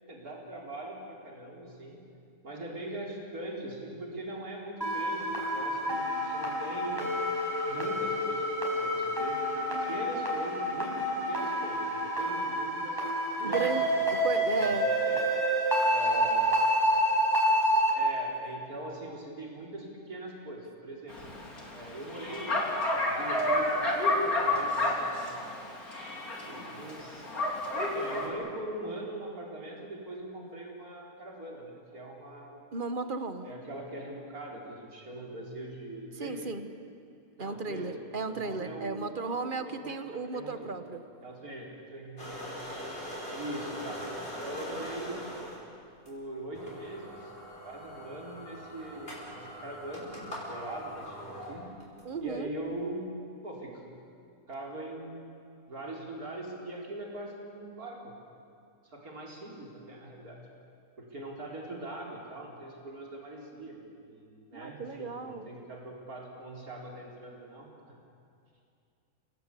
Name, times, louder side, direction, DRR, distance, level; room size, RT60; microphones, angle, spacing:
voice 1, 0.1-2.0 2.4-7.0 7.6-9.4 9.8-13.0 13.4-13.7 13.9-14.8 15.0-15.2 15.9-16.6 17.9-21.2 21.7-22.7 23.0-25.5 25.8-26.1 26.4-27.3 27.9-32.6 33.4-36.5 37.4-40.7 41.2-42.4 43.3-45.2 46.1-47.3 47.6-51.7 52.2-53.1 53.4-53.8 54.5-55.1 55.7-58.1 58.8-60.4 61.0-63.8 64.1-68.0, right 1 dB, 85° right, -1 dB, 4.5 m, -42 dB
sound 1, 4.8-17.9, equal, 15° right, 5.2 m, -28 dB
voice 2, 13.4-13.8 14.1-14.9 32.7-33.5 36.2-36.7 37.4-41.0 52.0-52.5 64.5-65.5, right 4 dB, 35° right, 9 dB, 1.3 m, -34 dB
Bark, 21.1-28.3, left 1 dB, 80° left, 3.8 m, -30 dB
sound 2, 42.2-45.6 46.1-46.2 46.5-52.0, equal, 40° left, 6.2 m, -41 dB
29.5 x 18.0 x 8.4 m, 2.5 s
omnidirectional pair, 1.5 m